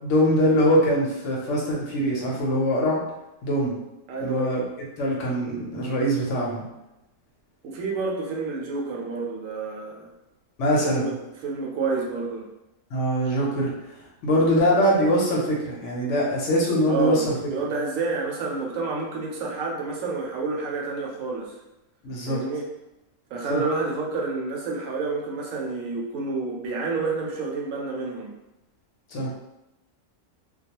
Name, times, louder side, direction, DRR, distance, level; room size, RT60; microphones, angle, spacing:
voice 1, 0.0-3.0 3.4-3.8 4.2-4.6 5.0-6.6 10.6-11.1 12.9-13.7 14.2-17.3 22.0-22.4 23.5-23.6 29.1-29.3, equal, 65° left, -3 dB, 0.9 m, -22 dB
voice 2, 4.1-4.6 7.6-10.1 10.8-12.5 16.9-21.5 22.3-22.7 23.3-28.3, right 4 dB, 75° right, -1 dB, 1.0 m, -29 dB
2.3 x 2.3 x 2.8 m, 0.94 s
omnidirectional pair, 1.4 m